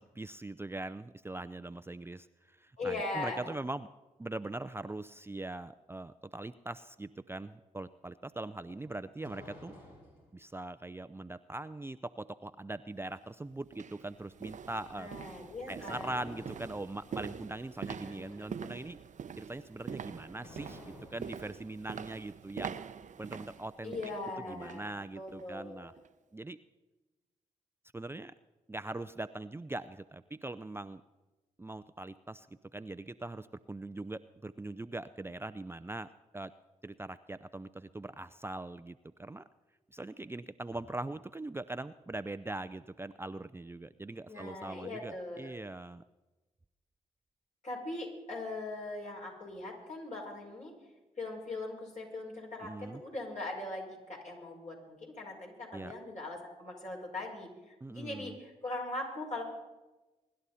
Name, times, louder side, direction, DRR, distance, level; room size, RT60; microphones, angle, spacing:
voice 1, 0.0-3.9 4.2-9.7 10.3-15.1 15.7-19.0 19.4-20.8 21.1-22.9 23.2-23.9 24.5-25.9 26.3-26.6 27.9-28.3 28.7-31.0 31.6-32.5 32.7-36.5 36.8-39.4 39.9-46.0 52.6-53.0 55.7-55.9 57.8-58.4, right 2 dB, 15° right, 12 dB, 0.5 m, -41 dB
voice 2, 2.8-3.5 15.0-16.3 18.1-18.3 23.8-25.9 44.3-45.5 47.6-50.7 51.2-59.4, left 2 dB, 55° left, -2 dB, 5.8 m, -40 dB
sound 1, 8.7-10.4 15.3-16.9 19.8-21.5, left 1 dB, 70° left, 4.5 m, -53 dB
sound 2, 13.0-13.1 13.7-24.9 25.3-25.5 26.0-26.1, right 7 dB, 55° right, 0.7 m, -45 dB
24.5 x 11.5 x 4.2 m, 1.1 s
hypercardioid pair, 40°, 15 cm